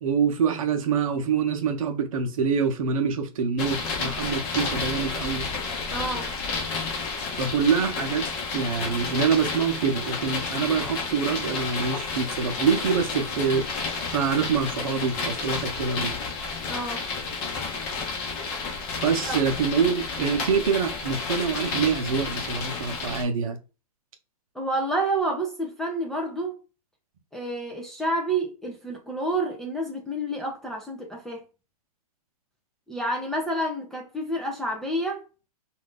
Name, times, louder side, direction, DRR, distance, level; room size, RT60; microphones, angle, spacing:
voice 1, 0.0-5.5 7.3-13.7 14.1-16.2 19.0-23.6, right 6 dB, 60° right, 0.8 m, -25 dB
sound 1, 3.6-23.2, left 4 dB, 30° left, 0.8 m, -31 dB
voice 2, 5.9-6.3 16.7-17.0 19.3-19.4 24.5-26.6 27.3-31.4 32.9-35.2, right 1 dB, ahead, 0.4 m, -29 dB
2.6 x 2.4 x 3.5 m
hypercardioid pair, 140°, 20 cm